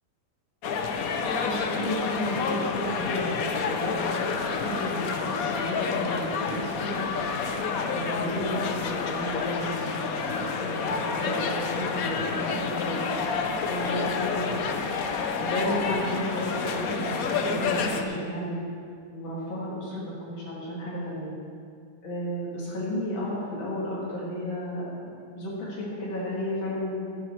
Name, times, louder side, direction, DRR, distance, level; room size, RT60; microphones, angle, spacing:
sound 1, 0.6-18.0, left 5 dB, 60° left, 1.0 m, -29 dB
voice 1, 1.4-4.3 4.6-7.0 7.9-10.3 10.6-13.0 13.6-14.6 15.4-18.6 19.1-20.0 20.3-21.3 22.0-27.1, left 1 dB, 80° left, -7 dB, 3.0 m, -33 dB
14.5 x 8.8 x 4.5 m, 2.3 s
omnidirectional pair, 2.1 m